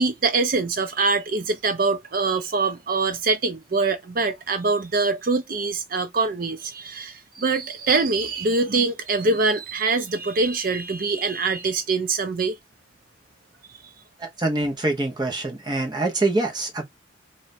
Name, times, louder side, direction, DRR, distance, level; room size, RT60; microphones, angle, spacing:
voice 1, 0.0-12.6 13.7-13.8, right 3 dB, 50° right, 0.5 m, -24 dB
voice 2, 14.2-16.8, right 2 dB, 25° right, 0.9 m, -25 dB
3.2 x 2.5 x 4.1 m
head